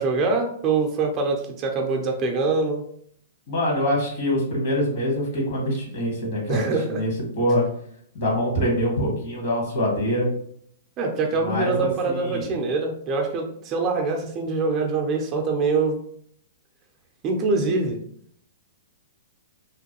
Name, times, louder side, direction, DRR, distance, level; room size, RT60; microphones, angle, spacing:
voice 1, 0.0-2.8 6.5-7.0 11.0-16.0 17.2-18.0, right 3 dB, 30° right, 2 dB, 0.5 m, -24 dB
voice 2, 3.5-7.6 8.1-10.3 11.4-12.5, equal, 60° left, -2 dB, 1.5 m, -24 dB
3.0 x 2.2 x 2.9 m, 0.64 s
hypercardioid pair, 135°, 0 cm